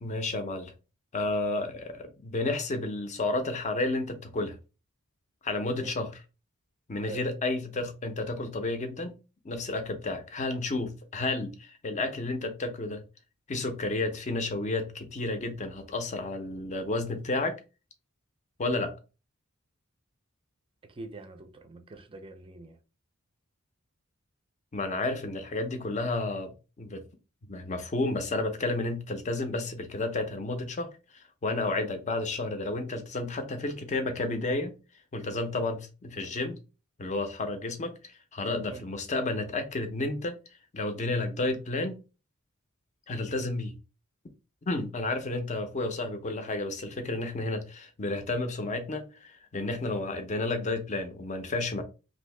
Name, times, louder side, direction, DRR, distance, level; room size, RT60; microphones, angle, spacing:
voice 1, 0.0-0.7 1.1-4.6 5.4-6.2 6.9-9.2 9.4-13.0 13.5-17.6 18.6-18.9 24.7-27.0 27.5-34.7 35.1-36.6 37.0-38.0 38.3-40.4 40.7-42.0 43.1-43.7 44.7-51.8, left 2 dB, 35° left, 0.5 m, -31 dB
voice 2, 20.9-22.8 38.7-38.8, right 3 dB, 25° right, 0.4 m, -44 dB
2.7 x 2.6 x 3.1 m
head